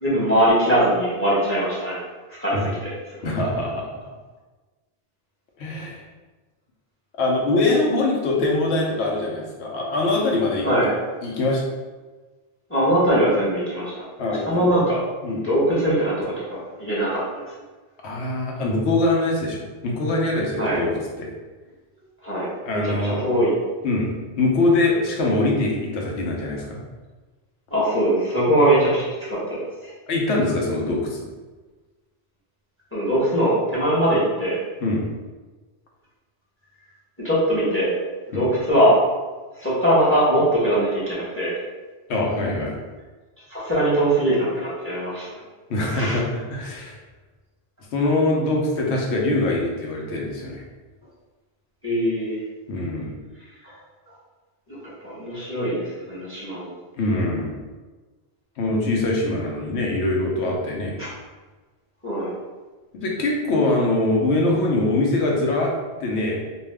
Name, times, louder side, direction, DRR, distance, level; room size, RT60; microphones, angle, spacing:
voice 1, 0.0-2.0 2.3-3.3 10.6-10.9 12.7-13.9 14.5-15.0 15.4-16.1 16.5-17.2 20.6-20.8 22.2-22.5 22.8-23.5 27.7-29.9 32.9-34.6 37.2-37.9 38.3-39.0 39.6-41.5 43.5-45.3 45.9-46.2 51.8-52.4 54.7-56.7 61.0-61.1 62.0-62.3, right 1 dB, 15° left, -8 dB, 0.8 m, -21 dB
voice 2, 3.2-3.8 5.6-6.0 7.2-10.7 11.2-11.6 14.2-14.7 15.2-15.5 18.0-21.3 22.7-23.2 23.8-24.1 24.4-26.8 30.1-31.2 34.8-35.0 38.3-38.4 42.1-42.8 45.7-46.9 47.9-50.6 52.7-53.1 57.0-57.6 58.6-60.9 62.9-65.7 66.0-66.4, left 2 dB, 90° left, -2 dB, 0.9 m, -23 dB
2.6 x 2.3 x 3.3 m, 1.3 s
omnidirectional pair, 1.1 m